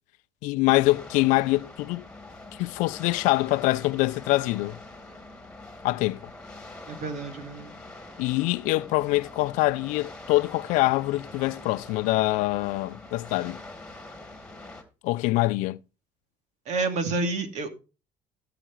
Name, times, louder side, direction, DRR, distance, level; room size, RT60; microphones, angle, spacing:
voice 1, 0.4-2.0 2.6-4.8 5.8-6.2 8.2-13.6 15.0-15.8, left 19 dB, 75° left, 0.5 m, -24 dB
sound 1, 0.6-14.8, left 2 dB, 5° left, 2.3 m, -44 dB
voice 2, 6.9-7.7 16.7-17.7, right 3 dB, 65° right, 2.4 m, -29 dB
15.0 x 5.1 x 4.5 m
supercardioid pair, 90°, 13 cm